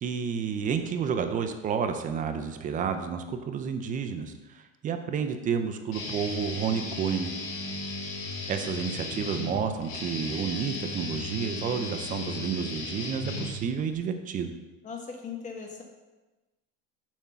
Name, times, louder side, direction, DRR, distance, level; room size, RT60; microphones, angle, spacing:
voice 1, 0.0-7.3 8.5-14.5, right 6 dB, 25° right, 7 dB, 0.5 m, -30 dB
Guitar, 5.9-13.9, left 2 dB, 85° left, 1.9 m, -36 dB
voice 2, 14.8-15.8, left 5 dB, 25° left, 2 dB, 1.2 m, -38 dB
7.2 x 3.6 x 5.6 m, 1.1 s
supercardioid pair, 145°, 30 cm